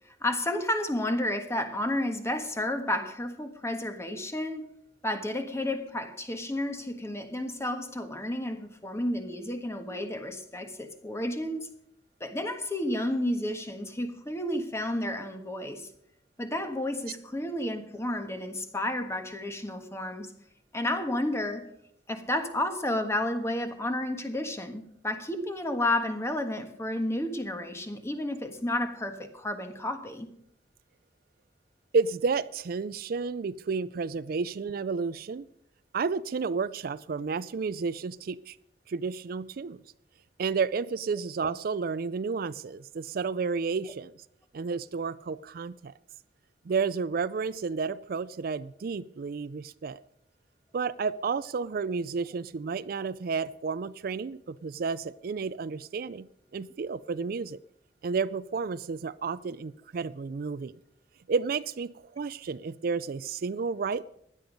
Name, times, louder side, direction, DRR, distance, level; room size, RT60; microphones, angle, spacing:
voice 1, 0.2-4.7 5.0-11.7 12.2-15.9 16.4-20.3 20.7-21.7 22.1-30.3, left 1 dB, 15° left, 7 dB, 1.5 m, -31 dB
voice 2, 31.9-35.5 35.9-38.6 38.9-39.8 40.4-44.1 44.5-45.9 46.6-50.0 50.7-56.3 56.5-57.6 58.0-60.7 61.3-64.1, right 5 dB, 55° right, 16 dB, 0.4 m, -31 dB
16.5 x 11.0 x 5.2 m, 0.74 s
head